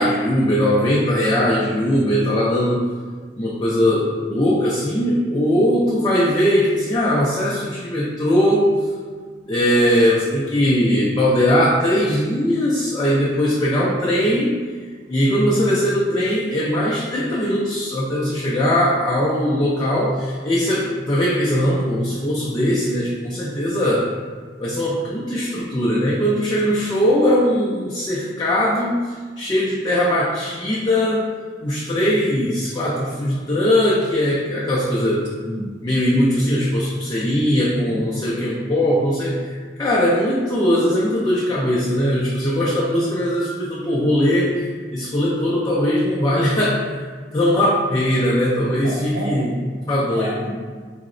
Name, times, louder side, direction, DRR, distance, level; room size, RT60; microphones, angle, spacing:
voice 1, 0.0-2.8 3.4-8.7 9.5-14.6 15.1-24.1 24.6-29.0 29.4-31.3 31.6-35.3 35.8-39.5 39.8-44.6 44.9-47.1 47.3-50.3, equal, 25° left, -7 dB, 0.4 m, -20 dB
voice 2, 35.3-35.7 37.7-38.0 48.8-49.7 50.1-50.5, right 1 dB, 70° right, -3 dB, 0.7 m, -30 dB
3.8 x 2.0 x 2.5 m, 1.5 s
head